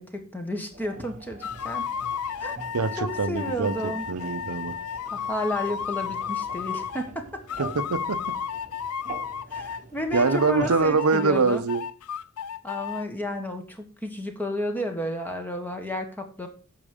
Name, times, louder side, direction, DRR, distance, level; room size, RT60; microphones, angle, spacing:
voice 1, 0.0-1.9 2.4-2.6 3.0-4.1 5.1-7.4 9.5-11.6 12.6-16.5, left 1 dB, 10° left, 1.5 m, -32 dB
sound 1, 0.7-11.0, right 3 dB, 35° right, 1.2 m, -44 dB
sound 2, 1.4-7.1 7.5-9.8 10.1-13.0, left 7 dB, 80° left, 0.5 m, -33 dB
voice 2, 2.7-4.8 7.6-8.3 10.1-11.8, right 4 dB, 85° right, 0.8 m, -24 dB
8.8 x 6.0 x 6.6 m
head